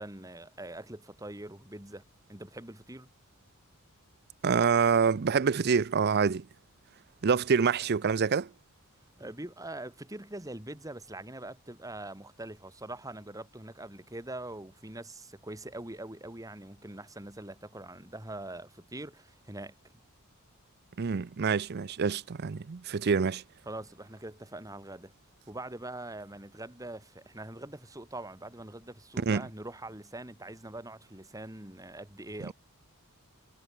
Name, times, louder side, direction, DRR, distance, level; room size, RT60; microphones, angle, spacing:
voice 1, 0.0-2.0 2.3-3.1 9.1-19.7 23.7-25.1 25.5-32.5, right 1 dB, 15° right, 2.8 m, -43 dB
voice 2, 4.4-6.5 7.2-8.5 21.0-23.4 29.2-29.4, right 5 dB, 45° right, 0.5 m, -26 dB
head